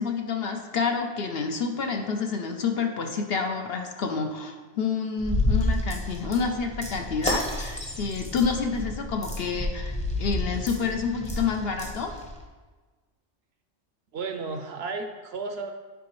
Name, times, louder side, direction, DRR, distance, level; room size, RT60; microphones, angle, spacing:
voice 1, 0.0-12.1, left 5 dB, 60° left, 4 dB, 0.8 m, -28 dB
sound 1, 5.2-12.4, left 1 dB, 5° left, 0.7 m, -30 dB
voice 2, 14.1-15.7, right 4 dB, 65° right, 5 dB, 0.7 m, -33 dB
10.5 x 4.9 x 3.1 m, 1.3 s
omnidirectional pair, 1.3 m